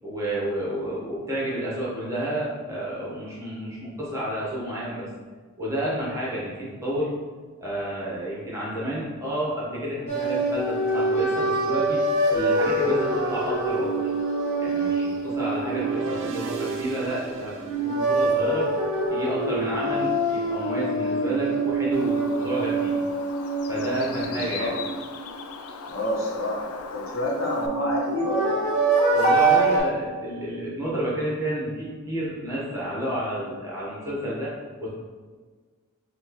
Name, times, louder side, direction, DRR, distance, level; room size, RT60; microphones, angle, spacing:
voice 1, 0.0-5.1 5.6-7.1 7.6-12.0 12.3-13.9 14.6-17.5 17.8-18.7 19.1-22.9 23.7-24.7 29.1-34.5 34.8-34.9, right 1 dB, 15° right, -7 dB, 1.1 m, -30 dB
sound 1, 10.1-17.1 17.6-25.5 27.2-29.8, right 2 dB, 30° left, 1.3 m, -25 dB
sound 2, 15.5-18.8, right 4 dB, 55° right, 0.4 m, -36 dB
voice 2, 15.9-16.3 24.2-24.8 25.9-28.6, left 1 dB, 65° left, -3 dB, 0.9 m, -28 dB
Bird, 21.9-27.7, left 5 dB, 80° left, 0.4 m, -39 dB
4.5 x 2.3 x 4.2 m, 1.5 s
head